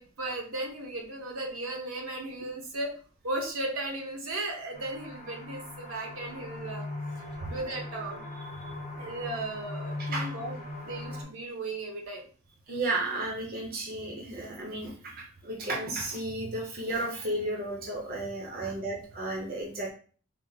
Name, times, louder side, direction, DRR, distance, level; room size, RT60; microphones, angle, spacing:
voice 1, 0.0-3.0 3.2-6.9 7.5-8.2 9.0-12.3 18.5-18.7, right 2 dB, 70° right, 0 dB, 0.9 m, -36 dB
sound 1, 4.7-11.2, left 2 dB, 35° left, 0.8 m, -39 dB
voice 2, 10.0-10.3 12.7-19.9, right 2 dB, 45° right, -1 dB, 0.7 m, -33 dB
4.0 x 2.0 x 3.9 m, 0.41 s
head